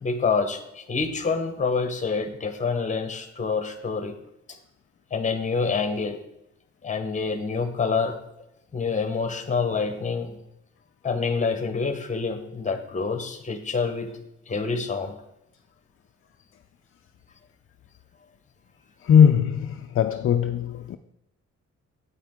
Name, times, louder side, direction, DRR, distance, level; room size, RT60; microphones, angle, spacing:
voice 1, 0.0-4.1 4.5-4.6 5.1-6.2 6.8-8.2 8.7-10.4 11.0-14.1 14.5-15.1, left 4 dB, 25° left, 0.9 m, -27 dB
voice 2, 19.0-21.0, left 8 dB, 50° left, 0.4 m, -19 dB
9.3 x 8.4 x 3.6 m
wide cardioid pair, 160°, 29 cm